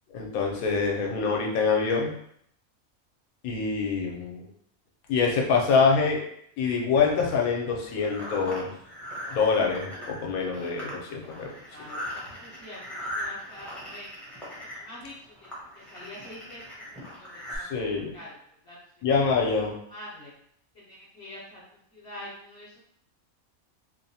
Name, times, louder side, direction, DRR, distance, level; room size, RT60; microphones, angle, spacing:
voice 1, 0.1-2.1 3.4-4.4 5.1-6.2 6.6-8.7 9.3-11.6 17.7-18.1 19.0-19.8, left 5 dB, 80° left, 0 dB, 1.1 m, -25 dB
sound 1, 7.0-17.6, equal, ahead, 0.6 m, -40 dB
voice 2, 11.7-12.0 12.4-14.1 14.8-15.1 15.9-16.6 17.2-17.8 18.1-18.4 18.7-18.8 19.9-20.3 21.2-21.6 21.9-22.7, left 1 dB, 60° left, -6 dB, 0.8 m, -44 dB
2.9 x 2.1 x 2.7 m, 0.69 s
omnidirectional pair, 1.5 m